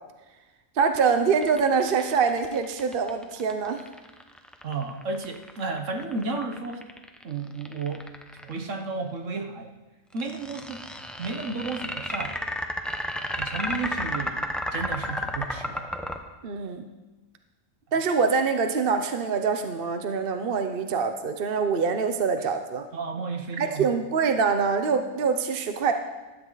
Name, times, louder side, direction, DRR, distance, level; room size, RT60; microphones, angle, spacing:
voice 1, 0.8-3.8 16.4-16.8 17.9-22.9 23.6-25.9, right 5 dB, 45° right, 7 dB, 0.9 m, -24 dB
sound 1, 1.4-8.6 10.2-16.2, equal, ahead, 0.7 m, -32 dB
voice 2, 4.6-6.8 7.2-8.1 8.3-9.7 10.1-10.8 11.2-12.4 13.4-15.9 22.9-23.9, right 3 dB, 65° right, 5 dB, 1.5 m, -32 dB
16.0 x 12.5 x 4.0 m, 1.1 s
omnidirectional pair, 1.4 m